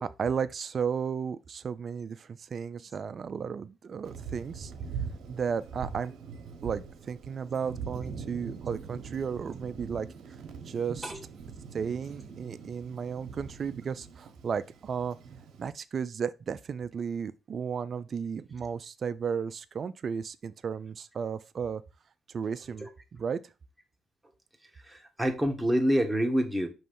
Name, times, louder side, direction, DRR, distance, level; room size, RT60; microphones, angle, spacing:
voice 1, 0.0-4.7 5.3-6.1 6.6-10.1 10.7-11.1 11.7-15.2 15.6-21.8 22.3-23.4, right 6 dB, 50° right, 0.5 m, -34 dB
Thunder, 4.0-15.7, right 6 dB, 75° right, 1.1 m, -42 dB
voice 2, 24.9-26.7, equal, 10° right, 1.4 m, -27 dB
5.6 x 3.1 x 5.3 m
cardioid pair, 90°, 0 cm